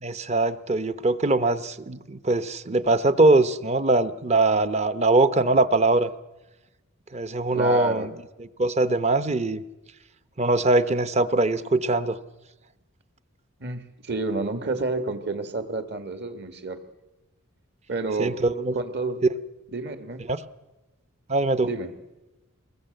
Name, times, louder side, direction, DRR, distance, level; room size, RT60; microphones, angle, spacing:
voice 1, 0.0-6.1 7.1-8.1 8.6-9.6 10.4-12.2 18.2-18.7 20.3-20.4 21.3-21.7, right 2 dB, 30° right, 14 dB, 0.8 m, -22 dB
voice 2, 7.5-8.1 13.6-16.8 17.9-18.4 18.7-19.2 19.7-20.2 21.6-21.9, right 3 dB, 50° right, 8 dB, 1.8 m, -29 dB
23.5 x 20.5 x 7.8 m, 1.1 s
head